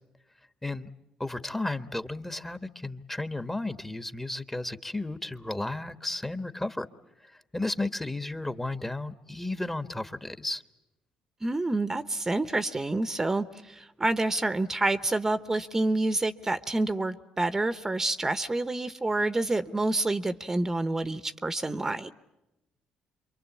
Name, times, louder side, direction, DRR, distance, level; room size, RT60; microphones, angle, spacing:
voice 1, 1.2-6.9 7.2-10.6, left 2 dB, 15° left, 11 dB, 1.3 m, -33 dB
voice 2, 11.4-22.1, right 2 dB, 20° right, 12 dB, 0.9 m, -28 dB
27.5 x 23.5 x 8.5 m, 0.96 s
supercardioid pair, 70°, 2 cm